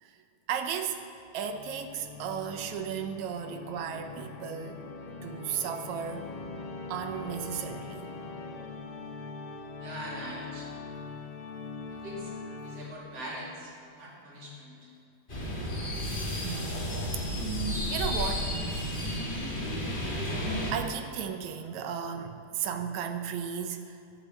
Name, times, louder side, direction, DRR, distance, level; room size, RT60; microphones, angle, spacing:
voice 1, 0.5-1.0 1.3-4.9 5.2-6.3 6.9-8.1 16.4-16.8 17.2-17.5 17.9-18.5 20.7-24.0, right 8 dB, 75° right, 7 dB, 2.0 m, -35 dB
Organ, 1.4-13.2, left 4 dB, 60° left, 1.5 m, -42 dB
voice 2, 9.8-10.7 12.0-12.3 12.6-14.8, equal, 55° right, -4 dB, 3.7 m, -41 dB
sound 1, 15.3-20.7, equal, 20° left, 1.7 m, -32 dB
11.5 x 8.6 x 8.0 m, 2.5 s
omnidirectional pair, 3.4 m